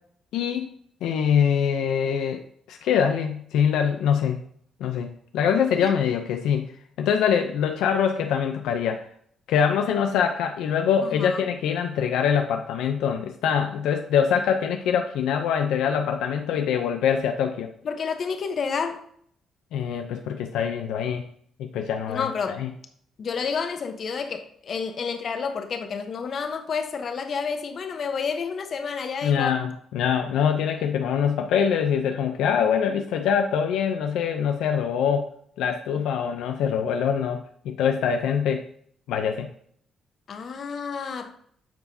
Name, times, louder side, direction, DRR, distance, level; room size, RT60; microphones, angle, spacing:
voice 1, 0.3-0.7 1.0-2.4 2.7-4.4 4.8-6.7 7.0-9.0 9.5-17.7 19.7-21.3 21.6-22.7 29.2-35.3 35.6-38.6 39.1-39.5, left 7 dB, 90° left, 0.5 m, -24 dB
voice 2, 11.0-11.4 17.8-19.0 22.1-22.6 23.2-29.6 40.3-41.3, left 5 dB, 55° left, 0.9 m, -30 dB
9.2 x 4.8 x 2.7 m
cardioid pair, 90°, 0 cm